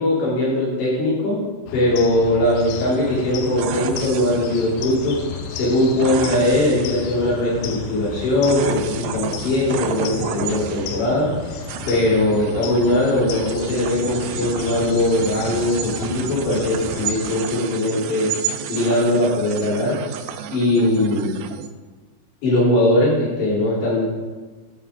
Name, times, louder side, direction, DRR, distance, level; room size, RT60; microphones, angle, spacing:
voice 1, 0.0-1.4 1.7-5.2 5.5-20.0 20.5-21.4 22.4-24.0, left 1 dB, 65° left, -8 dB, 5.7 m, -20 dB
sound 1, 1.7-17.4, left 6 dB, 80° left, 2.7 m, -33 dB
sound 2, 2.5-21.7, right 9 dB, 85° right, 2.8 m, -32 dB
12.0 x 6.4 x 3.7 m, 1.3 s
omnidirectional pair, 5.8 m